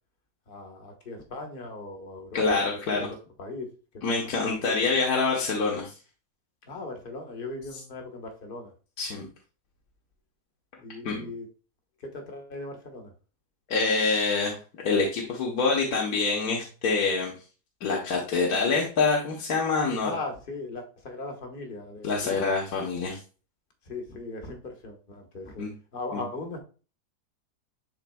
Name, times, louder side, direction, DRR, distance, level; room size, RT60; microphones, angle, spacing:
voice 1, 0.5-4.2 4.6-4.7 6.6-8.7 10.8-11.5 12.0-13.1 20.0-22.4 23.8-26.6, left 2 dB, 35° left, 3 dB, 1.3 m, -39 dB
voice 2, 2.3-3.1 4.0-5.9 9.0-9.3 11.0-11.3 13.7-14.6 14.8-17.3 17.8-20.1 22.0-23.2 25.6-25.7 26.1-26.2, left 4 dB, 65° left, -2 dB, 1.6 m, -26 dB
10.5 x 4.0 x 2.3 m, 0.36 s
omnidirectional pair, 1.8 m